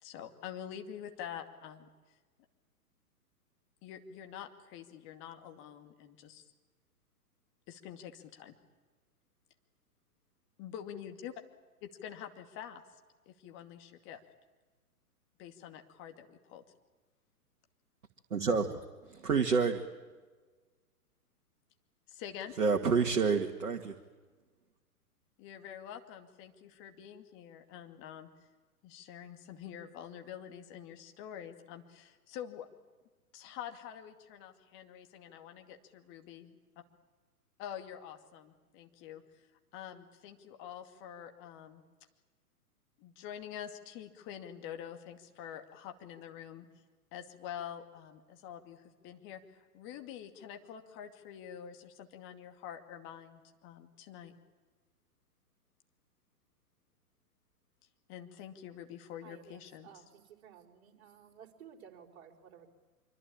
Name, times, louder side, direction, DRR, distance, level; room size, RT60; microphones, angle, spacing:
voice 1, 0.0-1.9 3.8-6.4 7.7-8.5 10.6-11.4 11.8-12.8 13.3-14.2 15.4-16.6 22.1-22.6 25.4-28.3 28.8-32.7 33.3-36.6 37.6-39.2 39.7-41.8 43.0-46.7 47.1-54.3 58.1-59.9, left 9 dB, 25° left, 6 dB, 2.3 m, -46 dB
voice 2, 18.3-19.8 22.6-23.9, right 5 dB, 65° right, 3 dB, 2.0 m, -29 dB
voice 3, 59.2-62.7, right 8 dB, 45° right, 1 dB, 4.6 m, -55 dB
25.5 x 24.5 x 8.7 m, 1.3 s
figure-of-eight pair, 115°, 46 cm